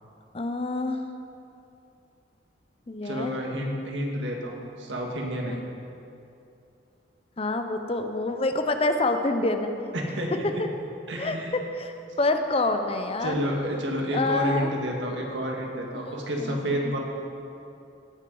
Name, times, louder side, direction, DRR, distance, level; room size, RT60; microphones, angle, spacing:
voice 1, 0.3-1.0 2.9-3.4 5.5-5.6 7.4-9.7 11.2-13.4 14.1-14.7 16.1-16.9, left 2 dB, 30° left, 7 dB, 0.6 m, -27 dB
voice 2, 3.0-5.6 9.9-10.6 11.1-11.5 13.2-17.0, equal, 90° right, 0 dB, 1.8 m, -30 dB
17.5 x 6.3 x 5.4 m, 2.7 s
head